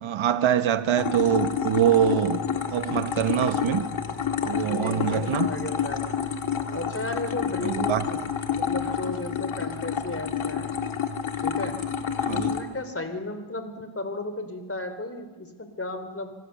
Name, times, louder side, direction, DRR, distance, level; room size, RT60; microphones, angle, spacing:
voice 1, 0.0-2.4 2.7-3.9 4.5-5.5 7.6-8.0 12.2-12.5, right 10 dB, 75° right, 1.3 m, -24 dB
sound 1, 1.0-12.6, left 7 dB, 75° left, 2.0 m, -29 dB
voice 2, 4.4-6.2 6.7-8.2 8.5-10.7 11.4-11.7 12.3-16.4, left 2 dB, 30° left, 3.6 m, -34 dB
25.5 x 15.0 x 6.8 m
cardioid pair, 70°, 48 cm